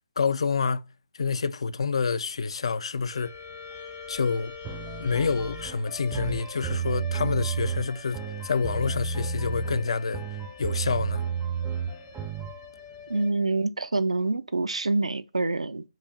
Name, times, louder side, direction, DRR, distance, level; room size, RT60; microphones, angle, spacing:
voice 1, 0.2-0.9 1.1-3.3 4.1-4.5 5.0-10.2 10.6-11.2, left 5 dB, 65° left, 0.3 m, -28 dB
sound 1, 3.1-13.3, left 6 dB, 25° left, 0.7 m, -44 dB
sound 2, 4.6-12.5, right 6 dB, 10° right, 0.4 m, -32 dB
voice 2, 13.1-15.9, right 2 dB, 90° right, 0.3 m, -26 dB
4.6 x 2.4 x 2.7 m
figure-of-eight pair, 145°, 3 cm